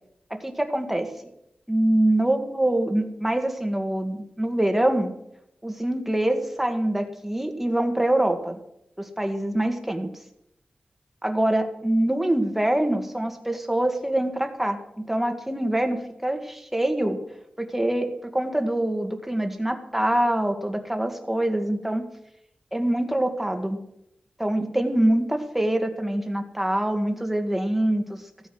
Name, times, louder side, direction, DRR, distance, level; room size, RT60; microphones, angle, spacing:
voice 1, 0.3-1.1 1.7-5.1 5.6-8.6 9.0-10.1 11.2-17.2 17.6-22.0 22.7-23.8 24.4-28.2, right 1 dB, 5° right, 5 dB, 1.9 m, -24 dB
15.5 x 9.3 x 6.2 m, 0.78 s
wide cardioid pair, 125°, 3 cm